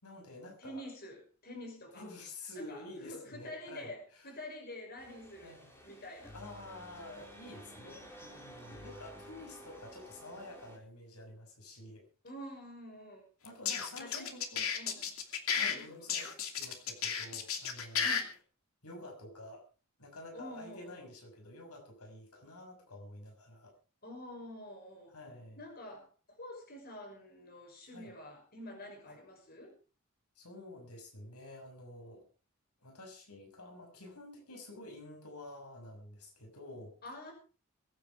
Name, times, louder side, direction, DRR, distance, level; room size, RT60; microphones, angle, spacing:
voice 1, 0.0-0.8 1.9-4.3 5.4-5.8 6.3-12.1 13.4-14.7 15.5-18.1 18.8-19.7 20.0-23.7 25.1-25.6 27.9-28.1 29.0-29.2 30.3-32.3 32.8-36.9, left 2 dB, 90° left, 2 dB, 6.1 m, -49 dB
voice 2, 0.6-2.1 2.6-5.6 5.8-6.4 9.1-9.2 12.2-13.3 14.0-14.3 14.7-15.0 15.5-16.3 18.0-18.3 20.3-21.0 24.0-25.2 25.6-29.7 37.0-37.3, left 1 dB, 45° left, 2 dB, 6.0 m, -48 dB
sound 1, 5.0-10.8, equal, 10° left, 4.3 m, -52 dB
sound 2, 13.4-15.7 16.1-18.2, left 7 dB, 70° left, 2.7 m, -33 dB
23.0 x 9.4 x 5.0 m, 0.35 s
head